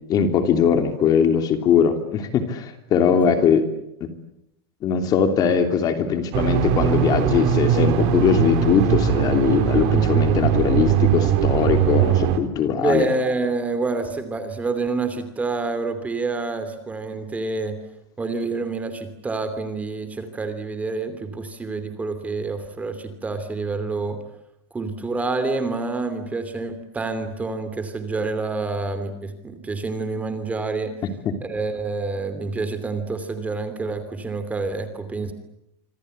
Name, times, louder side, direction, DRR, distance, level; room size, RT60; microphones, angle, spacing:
voice 1, 0.1-3.6 4.0-4.1 4.8-13.1 31.2-31.3, left 7 dB, 30° left, 7 dB, 3.1 m, -20 dB
sound 1, 6.3-12.4, right 9 dB, 45° right, 3.1 m, -20 dB
voice 2, 12.8-17.8 18.2-24.2 24.7-30.9 31.4-35.3, right 3 dB, 10° right, 9 dB, 2.9 m, -27 dB
26.5 x 26.0 x 8.0 m, 0.83 s
supercardioid pair, 165°, 14 cm